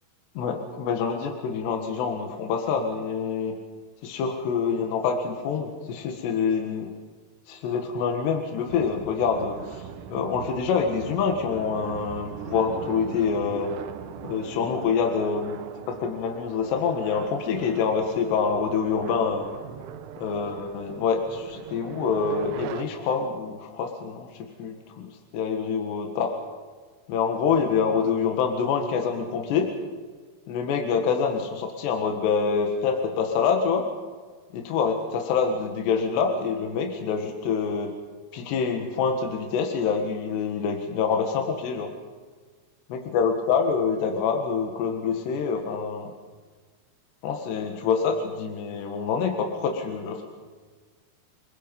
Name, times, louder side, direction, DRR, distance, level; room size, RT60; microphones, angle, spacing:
voice 1, 0.4-3.6 4.0-6.9 7.5-13.7 14.2-15.6 15.9-19.5 20.2-26.4 27.1-29.7 30.5-33.9 34.5-38.0 38.3-41.9 42.9-46.1 47.2-50.2, left 6 dB, 75° left, 3 dB, 3.8 m, -26 dB
sound 1, 8.7-22.8, right 8 dB, 75° right, 3.1 m, -40 dB
29.5 x 21.0 x 5.4 m, 1.4 s
omnidirectional pair, 5.0 m